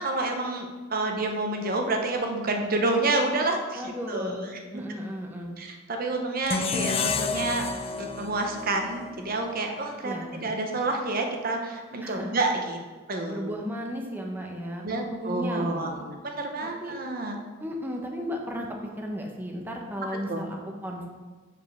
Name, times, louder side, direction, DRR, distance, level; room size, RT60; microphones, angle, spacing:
voice 1, 0.0-4.5 4.7-4.8 5.6-7.7 8.0-12.8 13.1-13.5 14.8-15.9 16.2-17.4 20.3-20.4, right 2 dB, 45° right, 3 dB, 0.9 m, -29 dB
voice 2, 3.8-5.5 10.0-10.5 12.0-12.3 13.3-16.1 16.8-17.0 17.6-18.7 19.0-21.1, equal, 10° right, 0 dB, 0.9 m, -35 dB
sound 1, 6.5-9.6, left 4 dB, 30° left, 0.4 m, -30 dB
7.3 x 5.2 x 6.2 m, 1.3 s
head